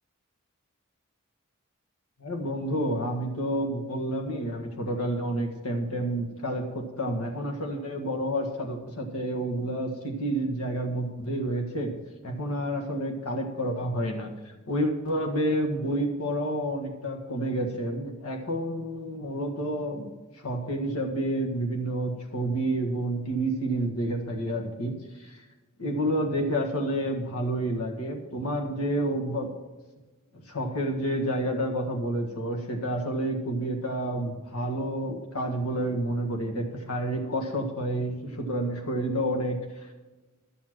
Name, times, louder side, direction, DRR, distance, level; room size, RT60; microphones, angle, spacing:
voice 1, 2.2-11.9 12.2-14.3 14.7-25.4 25.8-29.5 30.3-39.9, right 1 dB, 80° left, 2 dB, 1.7 m, -29 dB
12.0 x 7.2 x 6.1 m, 1.2 s
head